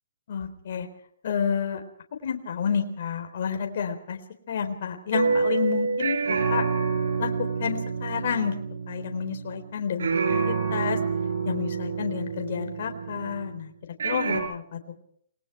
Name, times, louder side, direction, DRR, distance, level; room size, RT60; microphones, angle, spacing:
voice 1, 0.3-0.9 1.2-1.8 2.2-4.2 4.5-6.6 7.2-7.3 7.6-8.5 8.9-10.1 10.5-11.0 11.4-13.7 14.0-14.8, left 7 dB, 50° left, 4 dB, 3.9 m, -29 dB
sound 1, 5.1-9.7 10.0-13.6 14.0-14.4, right 5 dB, 75° right, 6.2 m, -28 dB
28.5 x 20.5 x 4.6 m, 0.66 s
hypercardioid pair, 160°, 0 cm